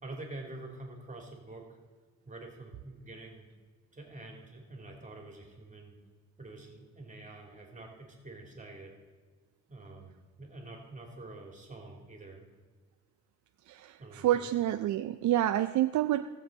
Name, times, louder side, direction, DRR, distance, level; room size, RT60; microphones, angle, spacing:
voice 1, 0.0-1.8 2.2-3.5 3.9-6.0 6.4-8.9 9.7-10.1 10.4-12.5 14.0-14.5, right 2 dB, 25° right, 1 dB, 3.1 m, -46 dB
voice 2, 13.7-16.3, right 13 dB, 70° right, 9 dB, 0.5 m, -28 dB
18.5 x 7.5 x 4.0 m, 1.4 s
cardioid pair, 90°, 30 cm